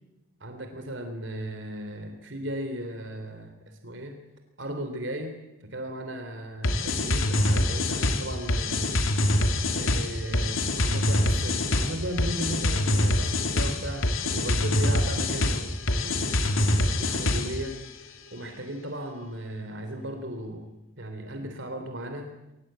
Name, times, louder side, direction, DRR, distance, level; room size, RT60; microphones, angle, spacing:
voice 1, 0.4-3.5 3.8-4.2 4.6-5.4 5.6-8.9 9.7-16.6 16.9-17.8 18.3-20.7 21.0-22.3, right 1 dB, 65° right, 5 dB, 3.2 m, -36 dB
sound 1, 6.6-17.7, left 1 dB, 85° left, 2.5 m, -25 dB
22.0 x 19.0 x 8.8 m, 0.94 s
head